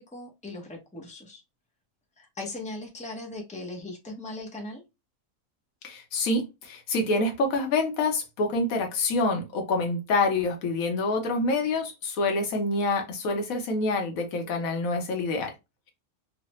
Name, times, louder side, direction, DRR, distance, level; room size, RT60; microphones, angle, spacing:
voice 1, 0.0-1.4 2.2-4.8, left 2 dB, 10° left, 0.3 m, -39 dB
voice 2, 5.8-15.5, left 2 dB, 75° left, 1.2 m, -27 dB
3.1 x 2.1 x 2.9 m
omnidirectional pair, 1.5 m